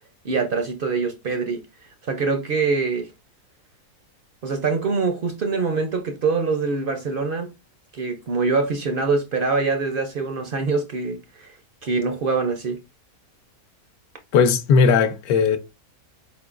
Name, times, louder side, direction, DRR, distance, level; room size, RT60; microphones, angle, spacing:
voice 1, 0.2-1.6 2.0-3.1 4.4-7.5 7.9-11.5 11.8-12.8, right 4 dB, 65° right, 0.5 m, -24 dB
voice 2, 14.3-15.6, left 5 dB, 80° left, 1.1 m, -17 dB
4.4 x 3.6 x 2.4 m
omnidirectional pair, 1.6 m